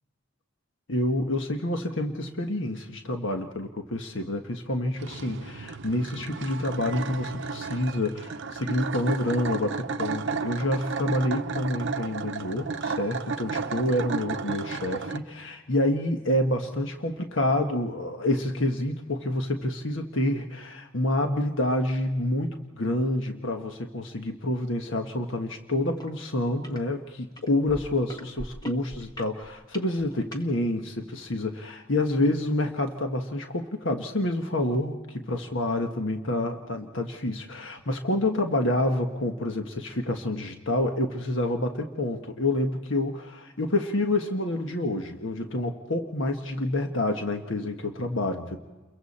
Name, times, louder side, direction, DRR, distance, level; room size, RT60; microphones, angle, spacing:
voice 1, 0.9-48.6, left 1 dB, 65° left, 4 dB, 1.4 m, -28 dB
sound 1, 5.0-15.2, right 4 dB, 60° right, 0.7 m, -33 dB
sound 2, 26.0-26.1 26.4-26.8 27.4-30.4 31.1-31.2, right 1 dB, 20° left, 1.4 m, -41 dB
30.0 x 22.5 x 4.3 m, 1.2 s
head